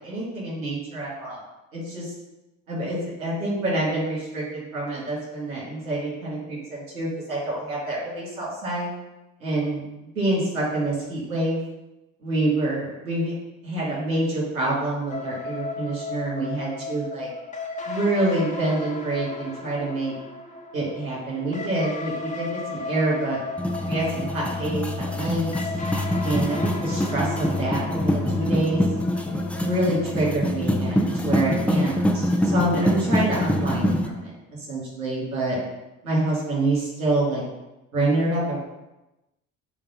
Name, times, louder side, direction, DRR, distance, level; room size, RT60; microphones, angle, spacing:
voice 1, 0.0-1.4 1.7-2.1 2.7-8.9 9.4-9.8 10.2-11.6 12.2-13.3 13.6-17.3 17.9-20.1 20.7-23.4 23.8-25.5 26.2-28.8 29.5-35.6 36.0-37.4 37.9-38.6, right 2 dB, 90° right, -6 dB, 2.2 m, -27 dB
sound 1, 15.1-30.6, left 3 dB, 20° left, 1.2 m, -36 dB
sound 2, 23.6-34.1, left 1 dB, 5° left, 0.7 m, -25 dB
6.9 x 2.6 x 5.7 m, 0.99 s
hypercardioid pair, 55°, 41 cm